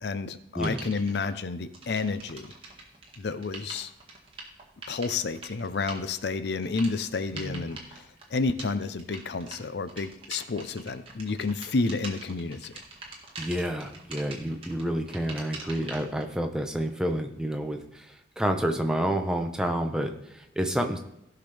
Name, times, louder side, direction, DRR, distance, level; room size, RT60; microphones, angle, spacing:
voice 1, 0.0-2.5 3.2-3.9 4.9-8.0 8.3-12.7, left 4 dB, 75° left, 12 dB, 0.6 m, -30 dB
sound 1, 0.6-1.3 1.7-16.2, right 3 dB, 30° right, 1.8 m, -44 dB
voice 2, 7.3-7.6 13.4-21.0, equal, 5° right, 4 dB, 0.7 m, -29 dB
16.5 x 5.9 x 3.4 m, 0.81 s
head